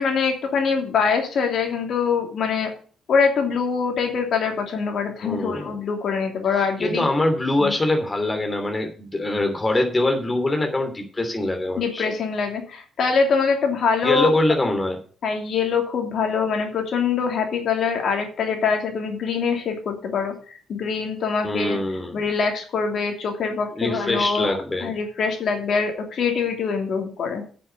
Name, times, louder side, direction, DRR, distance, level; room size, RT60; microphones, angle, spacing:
voice 1, 0.0-2.7 3.1-7.0 7.6-7.7 11.8-14.4 15.2-21.8 22.1-24.5 24.8-27.4, left 5 dB, 60° left, 3 dB, 2.9 m, -24 dB
voice 2, 5.2-5.7 6.8-12.1 14.0-15.0 21.4-22.2 23.7-24.9, left 2 dB, 20° left, 4 dB, 2.8 m, -23 dB
9.4 x 6.9 x 8.0 m, 0.41 s
cardioid pair, 90°, 0 cm